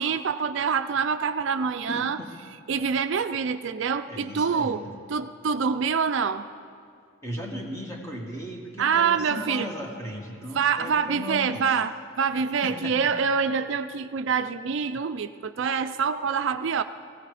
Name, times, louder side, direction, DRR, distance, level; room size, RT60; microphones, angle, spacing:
voice 1, 0.0-2.2 2.7-4.8 5.1-6.5 8.8-9.7 10.5-16.8, right 6 dB, 60° right, 10 dB, 0.4 m, -26 dB
voice 2, 1.9-2.3 4.1-5.0 7.2-11.6 12.6-13.1, equal, 15° left, 0 dB, 1.6 m, -36 dB
17.5 x 16.0 x 4.9 m, 2.3 s
head